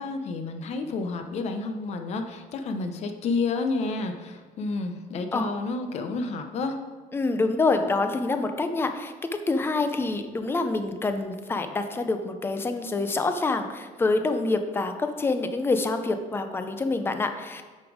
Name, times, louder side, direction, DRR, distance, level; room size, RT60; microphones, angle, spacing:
voice 1, 0.0-6.8, left 3 dB, 45° left, 6 dB, 0.8 m, -30 dB
voice 2, 7.1-9.1 9.5-17.6, left 3 dB, 15° left, 7 dB, 0.5 m, -26 dB
8.3 x 5.3 x 4.9 m, 1.4 s
cardioid pair, 175°, 15 cm